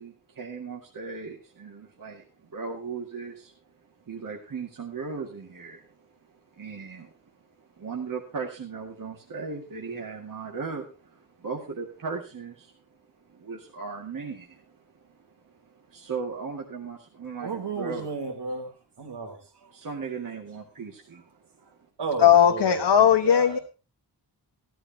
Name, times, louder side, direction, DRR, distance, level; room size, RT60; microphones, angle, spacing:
voice 1, 0.0-12.7 13.2-18.1 19.7-21.8, right 5 dB, 50° right, -1 dB, 2.1 m, -38 dB
voice 2, 17.4-19.7 21.6-21.7 22.0-23.6, right 4 dB, 70° right, 5 dB, 3.3 m, -34 dB
voice 3, 22.2-23.6, left 9 dB, 80° left, 5 dB, 1.2 m, -18 dB
15.5 x 13.5 x 2.9 m, 0.32 s
wide cardioid pair, 175°, 41 cm